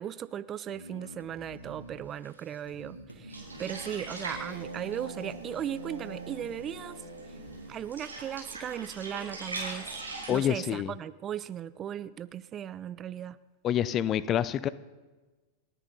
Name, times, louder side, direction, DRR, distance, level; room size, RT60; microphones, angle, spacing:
voice 1, 0.0-7.4 7.7-9.9 10.3-13.4, right 10 dB, 30° right, 16 dB, 0.4 m, -37 dB
sound 1, 0.7-7.7, right 1 dB, 90° left, 2.2 m, -45 dB
sound 2, 3.3-10.5, right 2 dB, 80° right, 4.9 m, -42 dB
voice 2, 10.3-10.9 13.6-14.7, left 10 dB, 30° left, 18 dB, 0.6 m, -27 dB
29.5 x 9.9 x 4.0 m, 1.2 s
figure-of-eight pair, 90°, 0 cm